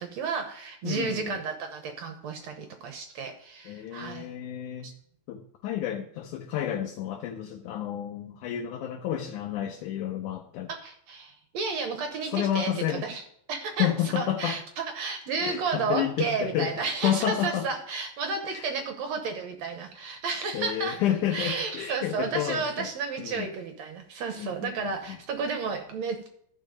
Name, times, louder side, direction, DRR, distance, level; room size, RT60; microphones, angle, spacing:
voice 1, 0.0-4.3 4.8-4.9 10.7-13.2 13.5-21.0 21.3-26.3, right 5 dB, 65° right, 5 dB, 1.9 m, -32 dB
voice 2, 0.8-1.4 3.7-4.9 5.3-10.7 12.3-13.0 13.8-14.6 15.4-17.6 18.5-18.7 20.5-22.9 23.2-23.5 24.4-25.2, left 11 dB, 75° left, 3 dB, 2.1 m, -30 dB
14.5 x 4.9 x 5.2 m, 0.69 s
omnidirectional pair, 4.0 m